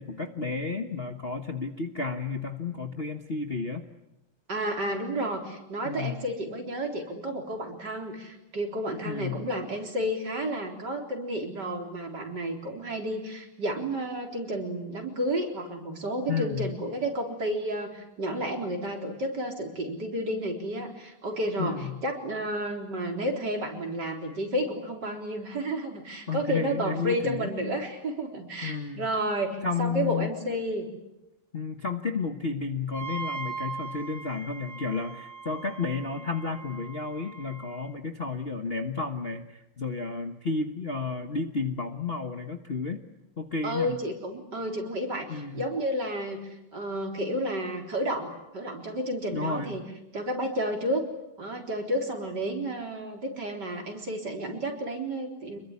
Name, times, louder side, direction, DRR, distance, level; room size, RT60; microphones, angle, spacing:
voice 1, 0.0-3.8 5.8-6.1 9.0-9.5 16.3-16.7 21.6-22.0 26.3-27.5 28.6-29.1 29.6-30.3 31.5-43.0 43.4-44.0 45.3-45.6 49.3-49.7, left 4 dB, 35° left, 5 dB, 1.2 m, -32 dB
voice 2, 4.5-30.9 43.6-49.8 50.1-51.0 51.4-55.6, right 1 dB, 50° right, 3 dB, 4.5 m, -31 dB
Wind instrument woodwind instrument, 32.9-37.9, right 4 dB, 75° left, 5.1 m, -40 dB
26.0 x 22.5 x 9.8 m, 0.92 s
omnidirectional pair, 2.4 m